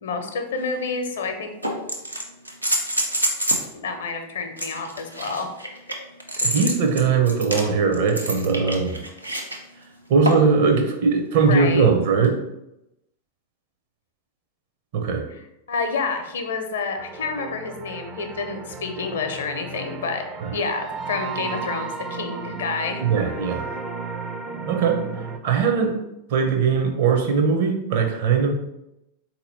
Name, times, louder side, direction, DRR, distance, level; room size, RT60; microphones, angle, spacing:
voice 1, 0.0-1.5 3.7-5.5 11.4-11.9 15.7-20.2 20.5-23.0, left 4 dB, 65° left, 6 dB, 0.6 m, -28 dB
sound 1, 0.6-0.7 1.6-3.7 4.6-9.6 10.3-10.6 12.2-12.3, right 1 dB, 85° right, 0.6 m, -27 dB
voice 2, 6.4-9.0 10.1-12.4 14.9-15.2 20.4-20.5 23.0-23.6 24.7-25.0 25.4-26.0 26.3-28.5, right 5 dB, 50° right, 4 dB, 0.8 m, -20 dB
sound 2, 17.0-25.4, right 4 dB, 25° right, 0.4 m, -34 dB
4.1 x 2.9 x 4.1 m, 0.86 s
figure-of-eight pair, 90°, 0 cm